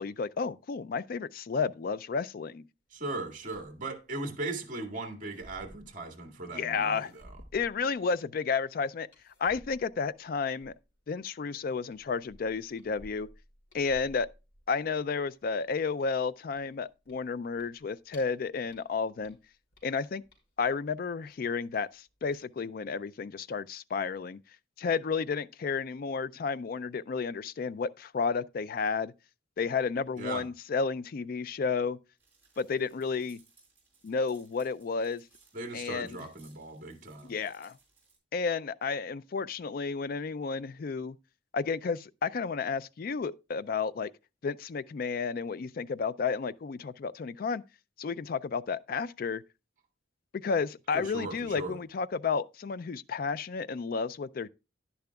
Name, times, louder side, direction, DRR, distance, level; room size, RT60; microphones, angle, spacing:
voice 1, 0.0-2.6 6.5-7.1 7.5-9.1 9.4-10.7 11.1-13.3 13.7-14.3 14.7-19.4 19.8-20.2 20.6-24.4 24.8-29.1 29.6-32.0 32.6-33.4 34.0-35.2 35.7-36.1 37.2-37.8 38.3-41.2 41.5-44.1 44.4-47.6 48.0-49.4 50.4-54.5, left 5 dB, 50° left, 0.3 m, -32 dB
voice 2, 2.9-7.4 30.2-30.5 35.5-37.4 50.9-51.8, right 2 dB, 40° right, 1.9 m, -38 dB
sound 1, 3.3-4.0 5.1-6.4 6.9-8.2 9.1-11.1 11.5-11.6 11.9-14.9 15.3-18.4 18.7-20.7 21.3-21.9 22.2-22.4, equal, 75° left, 3.7 m, -56 dB
sound 2, 32.2-38.2, right 4 dB, 10° right, 4.7 m, -64 dB
10.5 x 10.5 x 2.3 m
head